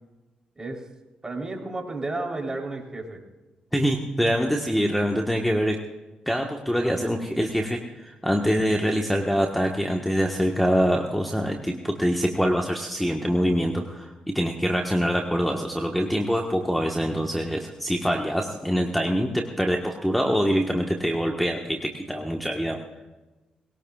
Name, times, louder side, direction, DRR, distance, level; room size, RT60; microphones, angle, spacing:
voice 1, 1.2-3.2, right 2 dB, 25° right, 1 dB, 3.8 m, -32 dB
voice 2, 3.7-5.8 6.3-22.8, equal, 5° left, 2 dB, 1.4 m, -24 dB
21.0 x 17.5 x 2.5 m, 1.2 s
cardioid pair, 70°, 3 cm